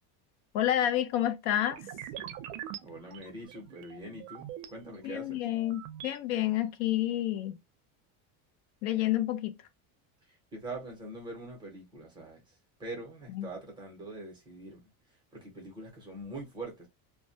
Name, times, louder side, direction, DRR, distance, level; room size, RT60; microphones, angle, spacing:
voice 1, 0.5-1.8 5.0-7.5 8.8-9.5 13.3-13.5, left 12 dB, 85° left, 0.7 m, -29 dB
sound 1, 1.6-4.7 5.2-6.2, right 11 dB, 60° right, 0.6 m, -44 dB
voice 2, 2.8-5.4 10.5-12.4 12.8-14.8 15.3-16.9, right 2 dB, 10° right, 0.7 m, -43 dB
2.2 x 2.2 x 2.7 m
cardioid pair, 170°, 43 cm